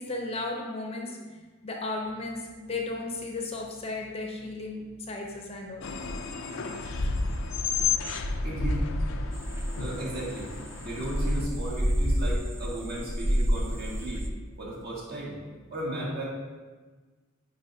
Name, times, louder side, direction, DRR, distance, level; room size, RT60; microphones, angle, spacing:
voice 1, 0.0-5.9, left 2 dB, 30° left, 1 dB, 0.7 m, -35 dB
sound 1, 2.0-15.6, right 1 dB, 85° right, 1.8 m, -57 dB
sound 2, 5.8-11.5, left 3 dB, 75° left, 0.5 m, -31 dB
voice 2, 8.4-8.9 9.8-10.5 10.8-14.2 14.6-15.4 15.7-16.2, right 1 dB, 50° right, -5 dB, 1.8 m, -35 dB
sound 3, 9.3-14.3, equal, 10° right, 0.3 m, -29 dB
9.3 x 4.5 x 2.7 m, 1.3 s
head